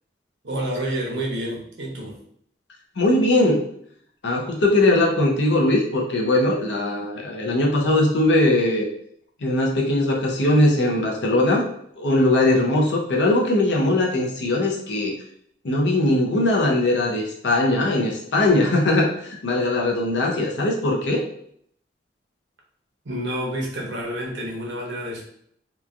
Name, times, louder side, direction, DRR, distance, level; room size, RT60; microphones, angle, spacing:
voice 1, 0.4-2.2 23.0-25.3, right 1 dB, 80° right, -1 dB, 0.8 m, -29 dB
voice 2, 3.0-3.6 4.2-8.9 9.4-11.7 12.0-15.1 15.6-21.2, left 1 dB, 80° left, -1 dB, 0.6 m, -20 dB
3.0 x 2.3 x 2.4 m, 0.67 s
head